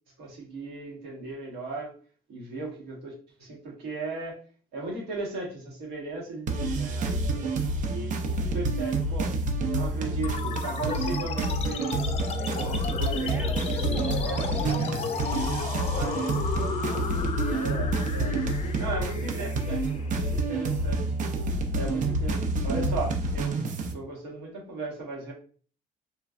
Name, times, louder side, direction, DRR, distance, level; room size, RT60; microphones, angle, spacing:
voice 1, 0.2-1.9 2.3-4.4 4.7-7.5 7.9-9.4 9.7-12.2 12.6-15.0 15.5-16.2 17.5-18.3 18.8-21.0 21.7-23.6 23.9-25.3, right 3 dB, 80° right, -3 dB, 1.3 m, -37 dB
sound 1, 6.5-23.9, right 2 dB, 50° right, 0.5 m, -28 dB
sound 2, 10.2-21.2, left 6 dB, 40° left, 0.4 m, -35 dB
voice 2, 12.4-15.6 16.9-19.5, equal, 5° right, -2 dB, 0.7 m, -44 dB
3.1 x 2.3 x 2.4 m, 0.41 s
cardioid pair, 110°, 17 cm